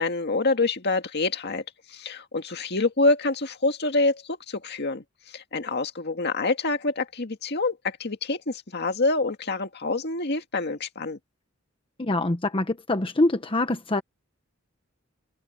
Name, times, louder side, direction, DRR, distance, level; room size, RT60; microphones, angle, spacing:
voice 1, 0.0-1.6 1.9-11.2, left 3 dB, 50° left, 2.0 m, -26 dB
voice 2, 12.0-14.0, left 2 dB, 25° left, 1.0 m, -24 dB
head